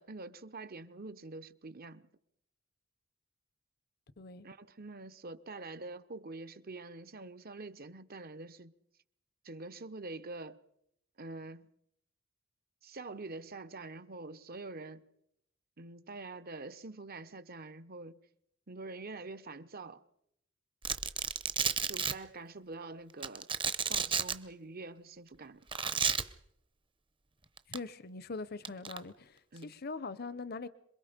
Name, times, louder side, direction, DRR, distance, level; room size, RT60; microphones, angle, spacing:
voice 1, 0.0-2.1 4.4-8.7 9.4-10.6 11.2-11.7 12.8-15.0 15.8-18.2 18.7-20.0 21.8-23.5 23.9-25.6 29.5-29.7, right 3 dB, 50° right, 1.1 m, -45 dB
voice 2, 4.2-4.5 27.7-30.7, left 3 dB, 50° left, 0.8 m, -42 dB
Domestic sounds home sounds, 20.8-22.1 23.2-24.3 25.7-26.2 27.6-27.8 28.6-29.0, right 6 dB, 25° right, 0.9 m, -31 dB
27.0 x 22.5 x 5.2 m
head